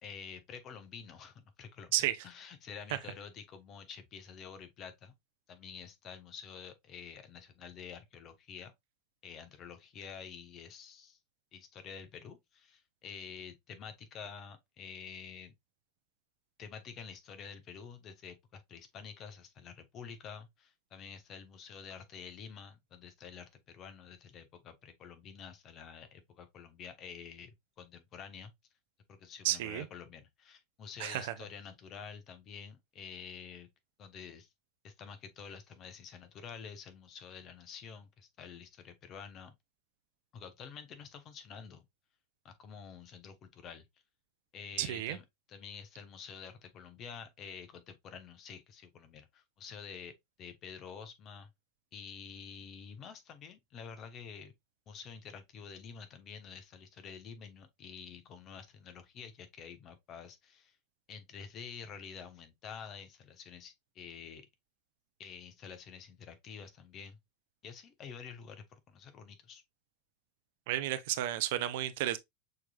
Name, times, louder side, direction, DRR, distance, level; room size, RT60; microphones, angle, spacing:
voice 1, 0.0-1.9 2.2-5.1 5.5-8.7 9.2-11.2 11.5-15.5 16.6-28.5 29.1-33.7 34.0-34.5 34.8-39.5 40.3-41.9 42.4-43.9 44.5-45.2 45.5-51.5 51.9-54.5 54.9-60.8 61.1-64.5 65.2-67.2 67.6-69.6, left 6 dB, 40° left, 1.0 m, -48 dB
voice 2, 29.4-29.9 31.0-31.3 44.8-45.2 70.7-72.2, right 14 dB, 60° right, 0.6 m, -32 dB
6.3 x 3.2 x 2.4 m
hypercardioid pair, 90°, 0 cm